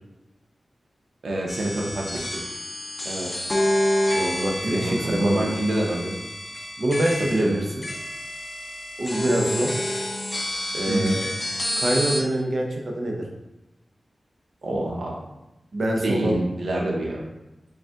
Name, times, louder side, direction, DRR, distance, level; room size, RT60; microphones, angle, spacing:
voice 1, 1.2-2.4 4.7-6.2 7.2-7.6 10.9-11.2 14.6-15.2 16.0-17.2, right 1 dB, 90° right, -2 dB, 0.8 m, -26 dB
sound 1, 1.5-12.2, left 1 dB, 25° left, 0.5 m, -28 dB
voice 2, 4.1-5.5 6.8-7.9 9.0-9.8 10.7-11.3 11.7-13.2 15.7-16.4, right 1 dB, 50° right, 0 dB, 0.7 m, -25 dB
5.1 x 2.4 x 3.6 m, 0.94 s
wide cardioid pair, 120°, 0 cm